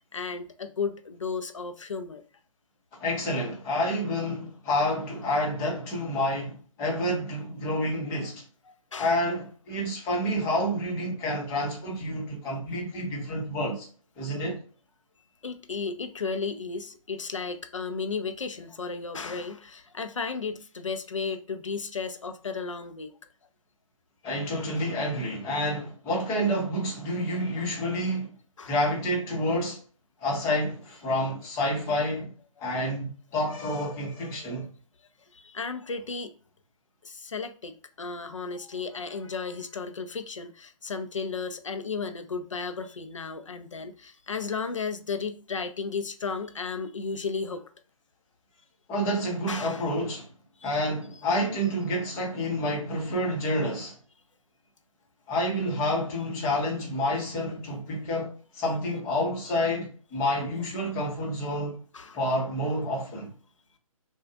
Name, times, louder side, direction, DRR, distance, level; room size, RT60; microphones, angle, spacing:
voice 1, 0.1-2.2 8.7-9.2 15.4-23.2 28.6-28.7 35.3-36.3 37.0-47.6 49.5-49.8 50.6-50.7 61.9-62.2, left 5 dB, 60° left, 0.7 m, -34 dB
voice 2, 3.0-8.4 9.0-13.9 14.2-14.6 24.2-28.3 28.7-29.8 30.2-32.3 32.6-34.7 48.9-50.3 50.6-54.0 55.3-61.8 62.1-63.3, left 1 dB, 15° left, 1.1 m, -29 dB
6.1 x 2.4 x 2.4 m
figure-of-eight pair, 140°, 18 cm